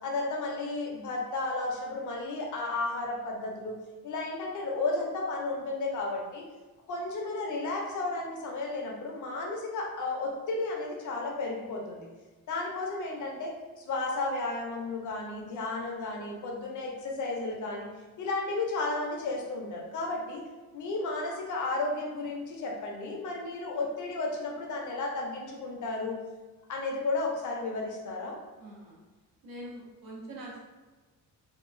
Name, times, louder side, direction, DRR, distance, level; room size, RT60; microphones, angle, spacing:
voice 1, 0.0-3.7 4.0-6.4 6.9-12.1 12.5-17.9 18.2-20.4 20.7-26.2 26.7-28.4, left 3 dB, 55° left, 0 dB, 0.6 m, -33 dB
voice 2, 28.6-29.0 29.4-30.6, right 1 dB, 70° right, -4 dB, 0.9 m, -43 dB
2.8 x 2.3 x 2.5 m, 1.2 s
cardioid pair, 180°, 35 cm